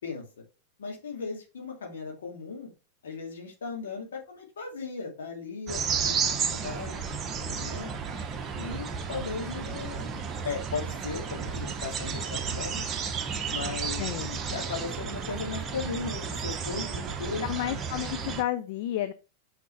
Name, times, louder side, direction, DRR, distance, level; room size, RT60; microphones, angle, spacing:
voice 1, 0.0-0.4 0.8-2.7 3.0-7.0 7.3-7.9 8.6-10.1 10.4-12.9 13.5-17.5, left 5 dB, 65° left, 0 dB, 2.5 m, -37 dB
sound 1, 5.7-18.4, right 6 dB, 25° right, 1.1 m, -33 dB
voice 2, 17.4-19.1, left 13 dB, 50° left, 11 dB, 0.5 m, -31 dB
6.1 x 5.8 x 3.3 m, 0.31 s
figure-of-eight pair, 90°, 0 cm